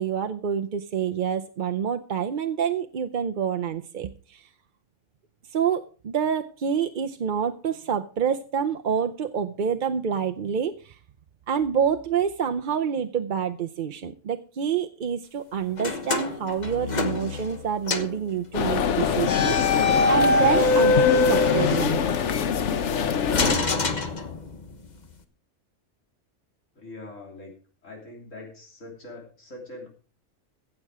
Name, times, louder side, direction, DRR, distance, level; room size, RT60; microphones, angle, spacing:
voice 1, 0.0-4.5 5.5-11.0 11.5-22.0, right 7 dB, 50° right, 6 dB, 0.7 m, -27 dB
sound 1, 15.8-17.6 17.9-18.2 19.2-22.4 23.3-24.7, left 2 dB, 35° left, 1.2 m, -23 dB
sound 2, 18.5-23.5, left 7 dB, 70° left, 1.1 m, -24 dB
voice 2, 26.7-29.9, left 2 dB, 90° left, -1 dB, 3.5 m, -43 dB
15.5 x 7.4 x 4.8 m, 0.41 s
omnidirectional pair, 1.3 m